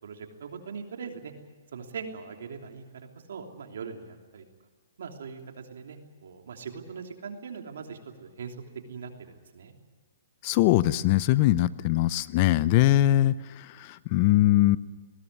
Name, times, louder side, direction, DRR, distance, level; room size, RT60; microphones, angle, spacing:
voice 1, 0.0-1.3 1.7-2.8 3.3-4.4 5.0-8.6 8.9-9.7 14.3-14.4, right 5 dB, 75° right, 3 dB, 3.1 m, -41 dB
voice 2, 10.4-14.8, left 15 dB, 40° left, 18 dB, 0.6 m, -22 dB
20.0 x 17.0 x 9.7 m, 1.3 s
hypercardioid pair, 150°, 0 cm